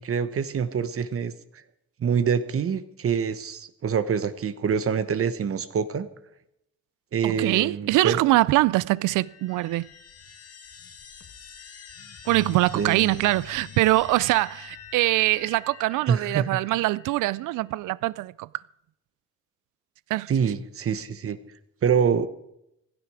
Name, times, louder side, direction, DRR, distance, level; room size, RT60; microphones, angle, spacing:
voice 1, 0.0-1.6 2.0-6.1 7.1-8.2 12.7-13.3 16.1-16.6 20.3-21.4 21.8-22.3, right 7 dB, 45° right, 1.1 m, -26 dB
voice 2, 7.2-9.9 12.3-18.5 20.1-20.3, right 18 dB, 90° right, 0.5 m, -23 dB
sound 1, 8.5-17.8, left 6 dB, 55° left, 1.8 m, -47 dB
Keyboard (musical), 12.3-15.8, left 10 dB, 30° left, 0.8 m, -45 dB
16.0 x 12.5 x 4.8 m
cardioid pair, 90°, 30 cm